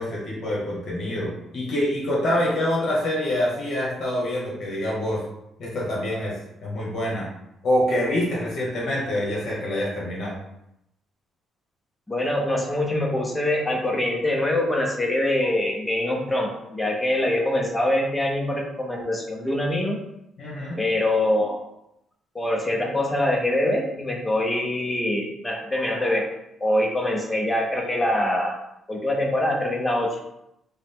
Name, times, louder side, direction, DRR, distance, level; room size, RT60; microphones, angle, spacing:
voice 1, 0.0-5.2 5.6-6.3 6.6-7.3 7.6-10.4 20.4-20.8, left 1 dB, 45° left, -5 dB, 1.3 m, -26 dB
voice 2, 12.1-20.0 20.8-21.6 22.3-26.3 26.6-28.5 28.9-30.2, left 1 dB, 10° left, 0 dB, 0.6 m, -24 dB
5.0 x 2.1 x 3.6 m, 0.82 s
cardioid pair, 165°, 0 cm